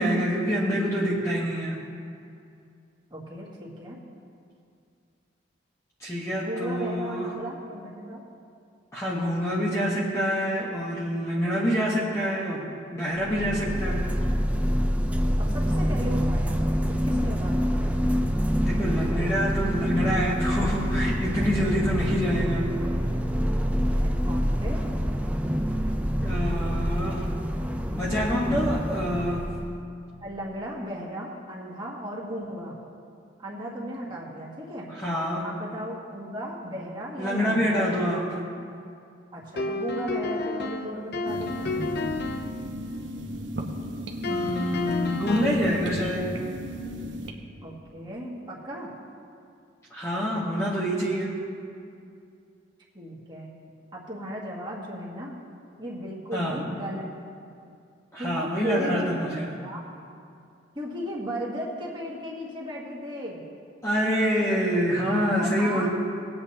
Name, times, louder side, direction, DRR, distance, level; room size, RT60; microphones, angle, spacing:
voice 1, 0.0-1.8 6.0-7.3 8.9-12.7 12.9-14.1 18.6-22.7 26.2-27.3 27.9-29.5 34.9-35.5 37.2-38.4 44.2-46.3 49.9-51.4 56.3-56.6 58.1-59.5 63.8-65.9, equal, 15° left, -7 dB, 1.2 m, -26 dB
voice 2, 3.1-4.0 6.4-8.2 15.4-16.6 17.0-17.9 23.7-24.8 30.2-32.8 33.4-34.9 35.4-37.7 39.3-41.7 45.2-45.5 46.0-46.2 47.6-48.9 52.9-53.5 53.9-55.4 55.8-57.1 58.2-59.9 60.7-63.4 65.3-65.9, equal, 25° right, -5 dB, 2.0 m, -36 dB
sound 1, 13.2-29.8, equal, 5° right, 0.5 m, -26 dB
sound 2, 39.6-42.6 44.2-45.7, left 2 dB, 55° left, 0.6 m, -30 dB
sound 3, 41.3-47.3, equal, 75° right, 1.0 m, -35 dB
20.0 x 8.6 x 2.9 m, 2.5 s
head